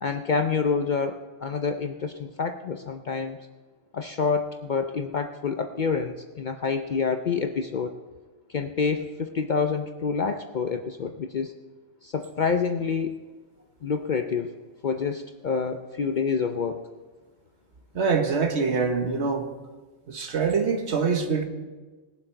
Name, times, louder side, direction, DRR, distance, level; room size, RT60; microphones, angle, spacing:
voice 1, 0.0-3.4 3.9-8.0 8.5-11.5 12.0-13.2 13.8-14.5 14.8-16.8, left 5 dB, 50° left, 6 dB, 0.6 m, -27 dB
voice 2, 17.9-19.4 20.1-21.4, right 5 dB, 70° right, 5 dB, 1.5 m, -24 dB
19.5 x 7.6 x 4.5 m, 1.3 s
omnidirectional pair, 1.2 m